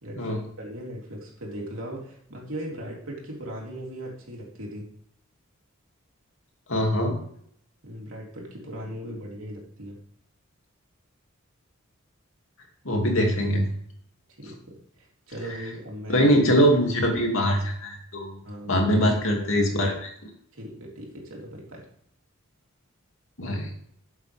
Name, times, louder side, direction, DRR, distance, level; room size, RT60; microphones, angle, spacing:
voice 1, 0.0-4.8 7.8-10.0 14.4-16.3 18.4-18.9 19.3-19.7 20.5-21.9, right 1 dB, 70° right, -2 dB, 3.5 m, -38 dB
voice 2, 6.7-7.2 12.8-13.6 16.1-20.1 23.4-23.7, equal, 65° left, 1 dB, 2.5 m, -22 dB
12.5 x 8.0 x 3.5 m, 0.65 s
head